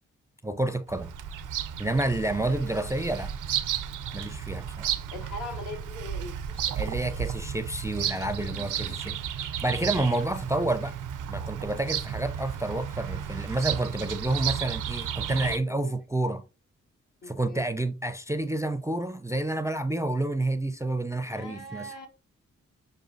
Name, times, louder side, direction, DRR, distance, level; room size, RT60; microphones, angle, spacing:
voice 1, 0.4-1.1 1.8-3.3 4.1-4.9 6.8-10.9 11.3-16.4 17.3-21.9, right 2 dB, 10° right, 0.4 m, -29 dB
Bird vocalization bird call bird song, 0.9-15.6, right 9 dB, 80° right, 0.5 m, -33 dB
voice 2, 2.4-3.0 5.1-6.9 8.4-9.0 15.7-16.0 17.2-17.7 21.2-22.1, left 2 dB, 70° left, 1.4 m, -42 dB
6.0 x 2.3 x 2.5 m
cardioid pair, 45°, 31 cm